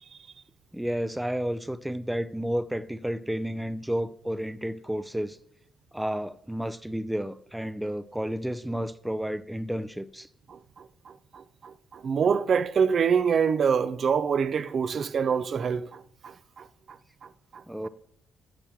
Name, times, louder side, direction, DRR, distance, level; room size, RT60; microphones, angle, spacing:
voice 1, 0.7-5.4 5.9-10.3 17.7-17.9, equal, 5° right, 0.6 m, -31 dB
voice 2, 10.5-16.7 17.2-17.9, right 6 dB, 50° right, 0.6 m, -26 dB
12.5 x 7.0 x 6.0 m
cardioid pair, 90°, 0 cm